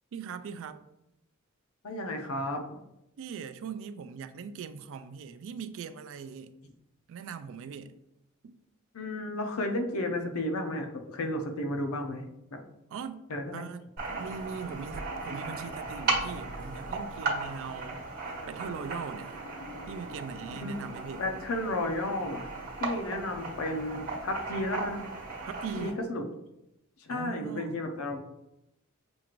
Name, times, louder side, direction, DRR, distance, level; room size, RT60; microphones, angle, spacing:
voice 1, 0.1-0.8 3.2-6.5 7.1-7.9 8.4-8.6 12.9-13.3 13.5-18.0 18.5-19.4 19.9-21.2 25.4-26.0 27.1-27.8, right 6 dB, 65° right, 0.3 m, -40 dB
voice 2, 1.8-2.6 8.9-12.6 13.3-13.6 20.6-20.7 21.2-22.5 22.8-25.1 25.8-26.2 27.0-28.2, left 1 dB, 75° left, 0.6 m, -33 dB
sound 1, 14.0-25.9, right 3 dB, 50° right, 1.4 m, -36 dB
6.1 x 2.5 x 3.0 m
head